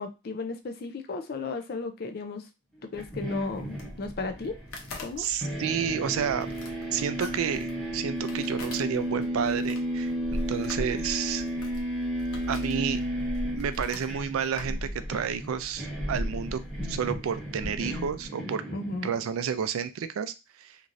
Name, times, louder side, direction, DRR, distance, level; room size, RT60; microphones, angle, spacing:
voice 1, 0.0-2.4 2.9-4.6 5.0-5.2 18.7-19.1, left 3 dB, 45° left, 6 dB, 0.4 m, -34 dB
sound 1, 2.9-18.3, equal, 90° left, 0.7 m, -40 dB
sound 2, 3.0-5.1 5.4-19.4, equal, ahead, 0.7 m, -34 dB
voice 2, 5.2-6.5 6.9-11.4 12.5-13.0 13.5-16.6 16.9-18.6 19.0-20.3 20.6-20.8, right 7 dB, 80° right, 12 dB, 0.3 m, -30 dB
3.0 x 2.5 x 2.5 m, 0.27 s
head